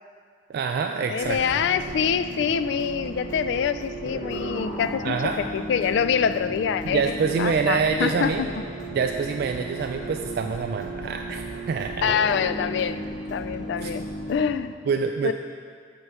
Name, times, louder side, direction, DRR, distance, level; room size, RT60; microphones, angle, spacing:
voice 1, 0.5-1.4 5.0-5.4 6.9-8.4 8.9-12.2 13.8-13.9 14.9-15.3, right 5 dB, 60° right, 4 dB, 0.3 m, -26 dB
voice 2, 1.1-8.5 12.0-13.0 13.3-14.8 15.2-15.3, left 7 dB, 70° left, 13 dB, 0.3 m, -25 dB
sound 1, 1.2-14.6, right 1 dB, 45° left, 1.1 m, -34 dB
7.9 x 4.6 x 5.5 m, 2.1 s
head